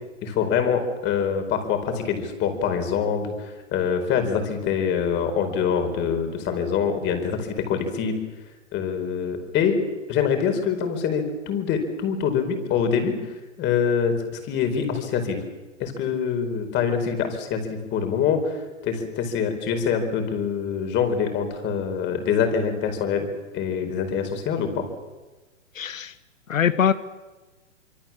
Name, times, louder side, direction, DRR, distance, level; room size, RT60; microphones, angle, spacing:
voice 1, 0.2-8.2 8.7-9.8 10.1-13.2 13.6-15.4 15.8-23.3 23.5-24.8, left 7 dB, 30° left, 6 dB, 4.7 m, -25 dB
voice 2, 25.7-26.1 26.5-26.9, left 8 dB, 90° left, 14 dB, 1.2 m, -22 dB
26.0 x 24.0 x 7.4 m, 1.2 s
hypercardioid pair, 135°, 38 cm